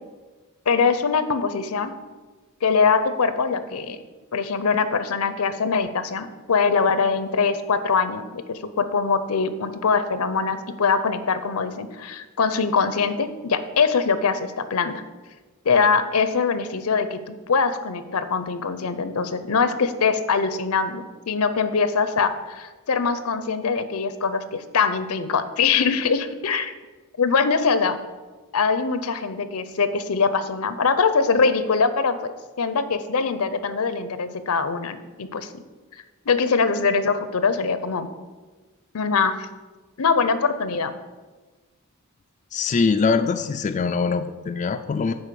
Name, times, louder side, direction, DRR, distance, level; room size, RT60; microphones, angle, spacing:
voice 1, 0.7-1.9 2.6-4.0 4.3-15.0 15.6-26.7 27.2-28.0 28.5-32.3 32.6-35.5 36.3-38.1 38.9-39.5 40.0-40.9, left 5 dB, 80° left, 11 dB, 0.7 m, -23 dB
voice 2, 42.5-45.1, left 5 dB, 35° left, 7 dB, 0.3 m, -23 dB
9.7 x 4.0 x 6.8 m, 1.3 s
head